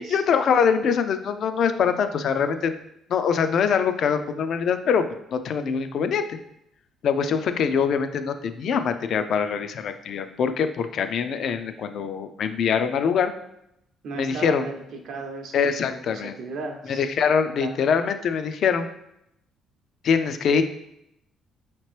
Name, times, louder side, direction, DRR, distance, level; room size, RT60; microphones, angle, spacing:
voice 1, 0.0-2.8 3.1-5.1 5.3-6.4 7.0-13.3 14.1-14.6 15.5-16.3 16.9-18.9 20.0-20.6, left 6 dB, 60° left, 9 dB, 0.3 m, -23 dB
voice 2, 14.0-17.0 17.6-17.7, right 3 dB, 70° right, 3 dB, 0.7 m, -36 dB
5.0 x 2.9 x 3.2 m, 0.80 s
cardioid pair, 125°, 0 cm